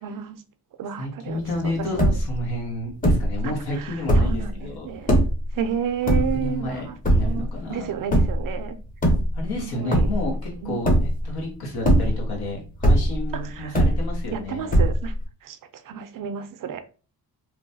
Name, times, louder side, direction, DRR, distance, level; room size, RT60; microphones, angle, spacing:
voice 1, 0.0-0.4 0.8-2.2 3.8-5.2 5.5-7.0 7.2-8.8 9.6-10.1 10.6-10.9 13.3-13.7 14.3-15.1 15.4-15.6 15.9-16.8, right 7 dB, 55° right, 0.5 m, -31 dB
voice 2, 1.0-4.9 6.1-7.9 9.3-14.7, left 1 dB, 75° left, 1.3 m, -31 dB
sound 1, 1.5-1.6 1.8-2.4 3.0-3.4 3.9-4.5 5.1-5.5 6.1-6.6 7.0-7.5 8.1-8.5 8.9-9.6 9.9-10.4 10.8-11.4 11.8-12.4 12.8-13.3 13.7-14.3 14.7-15.2, right 1 dB, 20° left, 0.8 m, -19 dB
3.0 x 2.3 x 2.6 m
cardioid pair, 90°, 38 cm